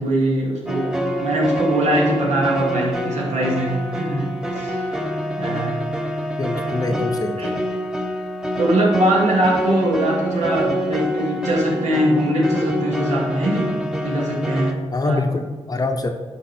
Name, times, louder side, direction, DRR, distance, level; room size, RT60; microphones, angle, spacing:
voice 1, 0.0-5.0 5.4-5.8 6.8-7.0 7.4-7.5 8.6-14.8 15.0-15.2, right 1 dB, 80° right, -3 dB, 2.4 m, -22 dB
sound 1, 0.7-14.7, equal, 5° right, 0.9 m, -26 dB
voice 2, 6.4-7.5 14.9-16.1, left 3 dB, 35° left, 5 dB, 0.8 m, -24 dB
10.0 x 5.5 x 4.3 m, 1.4 s
wide cardioid pair, 125°, 11 cm